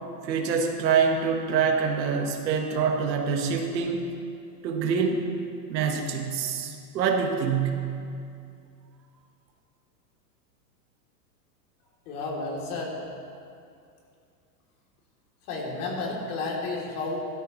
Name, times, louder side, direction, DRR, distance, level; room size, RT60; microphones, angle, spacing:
voice 1, 0.2-4.1 4.6-5.3 5.7-7.9, right 6 dB, 85° right, 2 dB, 1.6 m, -25 dB
voice 2, 12.0-13.0 15.5-17.3, left 3 dB, 60° left, -3 dB, 3.3 m, -31 dB
13.0 x 13.0 x 3.2 m, 2.4 s
supercardioid pair, 145°, 50 cm